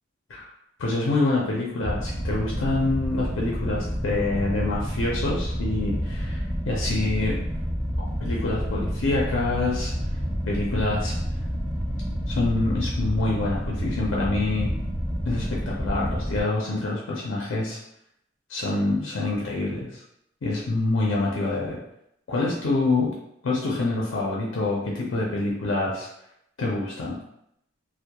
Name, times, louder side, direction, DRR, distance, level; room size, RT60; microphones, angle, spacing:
voice 1, 0.8-7.4 8.0-9.9 10.4-11.1 12.3-14.7 15.3-17.8 18.5-20.0 20.4-21.8 22.3-23.2 23.4-26.1 26.6-27.2, left 2 dB, 80° left, -3 dB, 0.5 m, -26 dB
sound 1, 1.8-16.4, equal, ahead, 0.4 m, -29 dB
2.2 x 2.1 x 2.8 m, 0.78 s
head